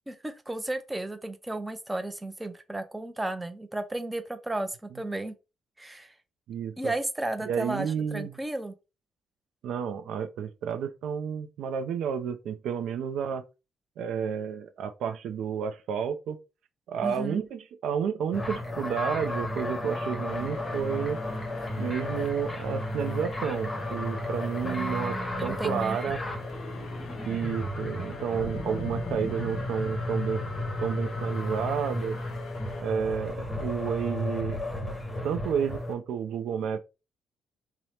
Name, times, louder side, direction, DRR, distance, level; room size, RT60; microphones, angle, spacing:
voice 1, 0.1-5.4 5.8-6.1 6.8-8.8 17.0-17.4 24.6-26.1, right 2 dB, 10° right, 0.4 m, -34 dB
voice 2, 6.5-6.9 7.5-8.3 9.6-13.4 14.0-16.4 16.9-21.2 21.8-25.1 25.4-26.2 27.3-30.4 30.8-32.2 32.8-34.6 35.2-36.8, right 7 dB, 80° right, 0.3 m, -31 dB
sound 1, 18.3-35.9, left 1 dB, 25° left, 0.7 m, -33 dB
sound 2, 20.3-32.8, left 5 dB, 85° left, 0.5 m, -43 dB
2.7 x 2.0 x 3.1 m
cardioid pair, 90°, 0 cm